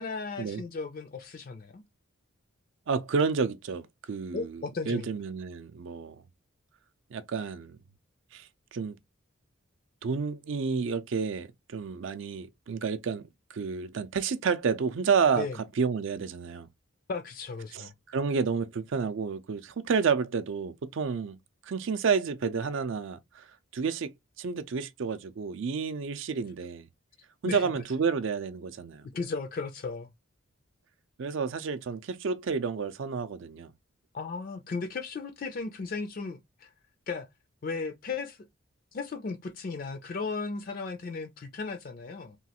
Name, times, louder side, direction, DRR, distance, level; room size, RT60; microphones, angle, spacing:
voice 1, 0.0-1.8 4.3-5.1 15.4-15.6 17.1-17.9 27.5-27.6 29.1-30.1 34.1-36.7 37.1-37.3 37.6-38.4 38.9-42.4, left 4 dB, 40° left, 0.4 m, -35 dB
voice 2, 2.9-6.2 7.1-7.8 8.3-9.0 10.0-15.5 15.8-16.7 17.7-21.4 21.6-23.5 23.7-24.1 24.4-26.9 27.4-29.1 31.2-33.7, right 5 dB, 60° right, 0.4 m, -30 dB
3.0 x 2.4 x 2.8 m
head